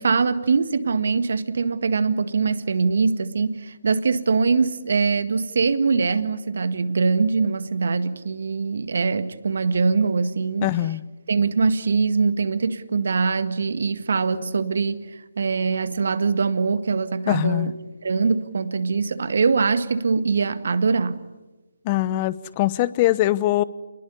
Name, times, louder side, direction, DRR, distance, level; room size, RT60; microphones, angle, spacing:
voice 1, 0.0-10.7 11.3-17.7 18.0-21.2, right 4 dB, 65° right, 1.9 m, -22 dB
voice 2, 10.6-11.0 17.3-17.7 21.8-23.6, left 15 dB, 30° left, 1.0 m, -22 dB
28.5 x 21.5 x 9.8 m
figure-of-eight pair, 145°, 0 cm